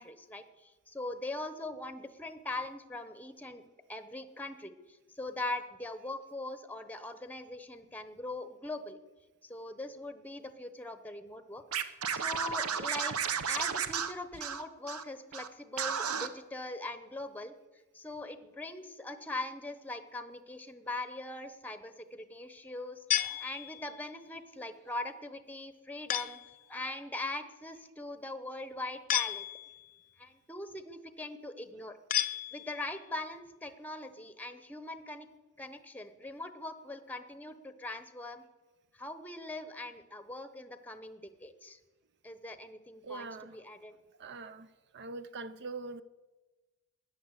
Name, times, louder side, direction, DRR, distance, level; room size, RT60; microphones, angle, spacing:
voice 1, 0.0-3.6 3.9-4.7 5.2-9.0 9.4-13.2 13.5-17.5 17.9-26.4 26.7-29.5 30.2-32.0 32.5-35.3 35.6-38.4 38.9-41.8 42.2-43.9, left 2 dB, 10° left, 11 dB, 0.8 m, -41 dB
Scratching (performance technique), 11.7-15.0 15.3-15.5 15.8-16.3, right 7 dB, 75° right, 0.9 m, -33 dB
sound 1, 23.1-24.0 26.1-26.6 29.1-29.9 32.1-33.0, left 12 dB, 40° left, 0.5 m, -33 dB
voice 2, 43.0-43.6 44.2-44.7 44.9-46.0, right 3 dB, 50° right, 13 dB, 0.5 m, -42 dB
14.0 x 9.8 x 8.1 m, 1.2 s
head